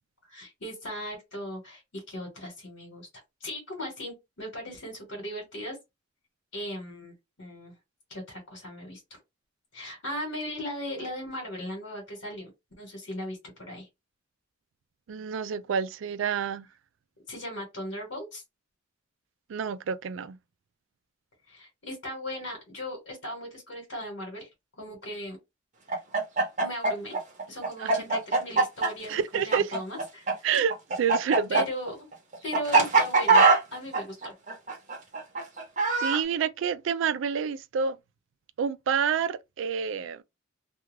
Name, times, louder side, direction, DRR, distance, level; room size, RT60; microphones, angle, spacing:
voice 1, 0.3-3.1 3.4-5.8 6.5-7.7 8.1-9.0 9.7-12.5 12.8-13.9 17.3-18.4 21.5-24.5 24.8-25.4 26.6-27.2 27.5-30.4 31.5-32.1 32.4-33.4 33.7-34.3, left 1 dB, 75° left, 1.2 m, -38 dB
voice 2, 15.1-16.7 19.5-20.4 27.8-28.0 29.1-29.7 30.4-31.6 36.0-38.0 38.6-40.2, right 7 dB, 70° right, 0.3 m, -28 dB
Chicken rooster, 25.9-30.3 30.6-36.2, right 3 dB, 40° right, 0.9 m, -22 dB
2.3 x 2.3 x 3.1 m
head